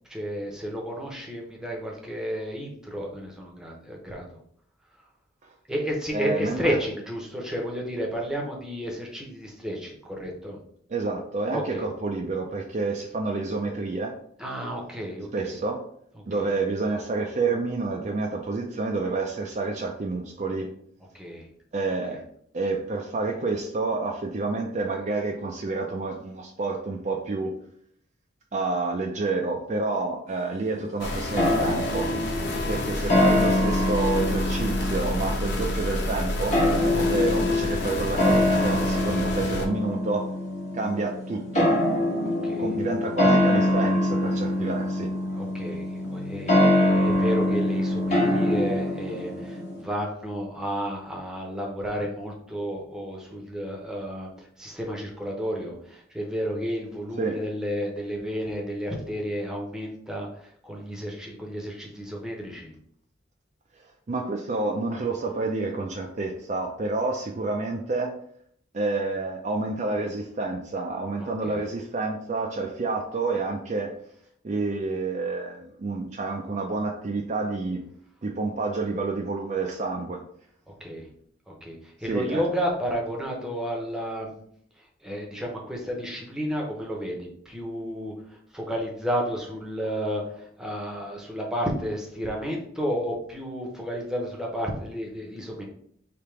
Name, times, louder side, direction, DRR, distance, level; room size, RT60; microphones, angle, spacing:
voice 1, 0.1-4.4 5.7-10.6 11.5-11.8 14.4-15.6 16.3-16.5 21.1-21.5 22.1-22.2 32.4-32.8 42.4-42.7 45.3-62.7 71.2-71.6 80.8-81.1 81.5-84.4 84.8-95.6, equal, 5° right, -1 dB, 0.8 m, -32 dB
voice 2, 6.1-6.8 10.9-14.2 15.3-15.8 16.3-20.7 21.7-22.2 22.5-27.5 28.5-32.1 32.7-36.6 36.9-40.3 40.7-41.8 42.6-45.1 57.2-57.4 64.1-68.2 68.7-74.0 74.4-77.8 78.2-80.2 82.1-82.4, right 3 dB, 35° right, 2 dB, 0.4 m, -29 dB
sound 1, 31.0-39.7, left 1 dB, 60° left, 0.8 m, -29 dB
sound 2, 31.4-49.8, left 1 dB, 35° left, 1.0 m, -24 dB
3.4 x 2.9 x 4.5 m, 0.66 s
head